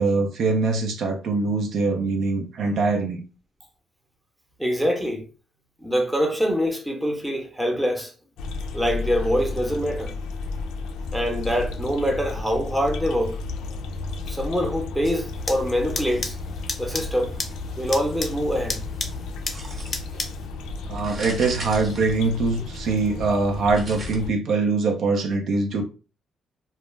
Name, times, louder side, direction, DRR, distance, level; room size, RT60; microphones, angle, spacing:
voice 1, 0.0-3.2 20.9-25.8, right 3 dB, 70° right, 0.5 m, -23 dB
voice 2, 4.6-5.2 5.8-8.1 8.7-10.1 11.1-13.4 14.3-16.4 16.8-17.3 17.8-18.8, equal, 5° right, 0.7 m, -24 dB
sound 1, 8.4-24.3, left 3 dB, 90° left, 0.3 m, -33 dB
sound 2, 15.0-20.5, left 3 dB, 35° left, 0.5 m, -34 dB
sound 3, 19.5-20.2 21.0-22.7 23.7-24.2, right 2 dB, 45° right, 0.8 m, -38 dB
2.2 x 2.0 x 3.2 m
cardioid pair, 90°, 0 cm